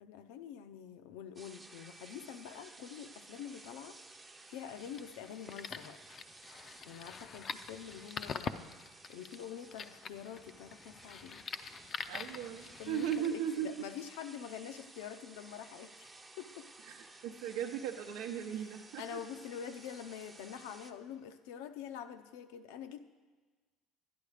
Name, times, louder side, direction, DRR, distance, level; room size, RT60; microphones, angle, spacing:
voice 1, 0.0-4.0 4.5-6.0 6.9-8.8 9.1-11.4 12.8-16.1 16.4-16.7 18.5-18.7 19.0-23.0, left 8 dB, 90° left, 9 dB, 0.7 m, -46 dB
sound 1, 1.4-20.9, right 3 dB, 15° right, 0.6 m, -56 dB
sound 2, 4.8-13.3, left 6 dB, 30° left, 0.4 m, -44 dB
voice 2, 12.1-13.7 16.9-19.2, right 9 dB, 80° right, 2 dB, 0.7 m, -37 dB
11.5 x 10.5 x 4.9 m, 1.4 s
cardioid pair, 140°, 0 cm